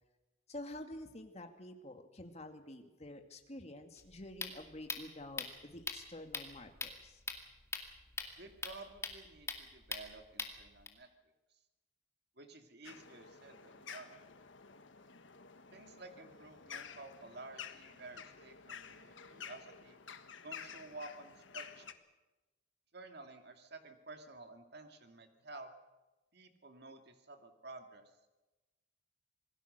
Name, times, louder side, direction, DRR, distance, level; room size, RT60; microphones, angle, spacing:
voice 1, 0.5-7.2, left 1 dB, 35° left, 5 dB, 2.3 m, -49 dB
sound 1, 4.0-10.9, left 3 dB, 15° left, 2.2 m, -43 dB
voice 2, 8.4-11.1 12.4-14.2 15.7-20.0 20.4-21.9 22.9-25.7 26.3-28.0, right 2 dB, 55° right, 6 dB, 2.3 m, -52 dB
sound 2, 12.8-21.9, left 7 dB, 75° left, 1.5 m, -51 dB
27.0 x 19.0 x 6.8 m, 1.1 s
head